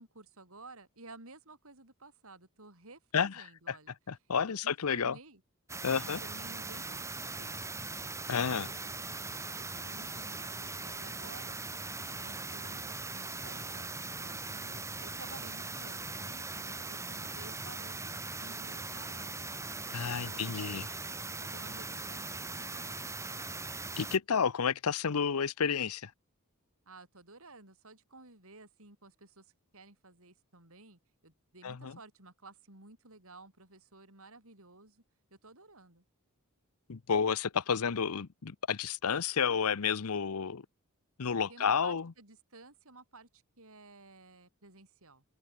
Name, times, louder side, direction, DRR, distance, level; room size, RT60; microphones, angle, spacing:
voice 1, 0.0-4.0 4.6-5.4 6.0-7.0 7.4-7.6 8.4-8.8 9.3-11.6 12.1-19.5 20.0-20.9 21.4-22.3 22.6-23.1 26.9-35.0 35.3-36.0 41.5-45.2, right 3 dB, 65° right, 7.5 m, -54 dB
voice 2, 3.1-3.8 4.1-5.2 5.8-6.2 8.3-8.7 19.9-20.8 24.0-26.1 31.6-32.0 36.9-40.7 41.2-42.1, left 6 dB, 75° left, 0.7 m, -31 dB
sound 1, 5.7-24.2, right 3 dB, 15° right, 2.2 m, -40 dB
open air
head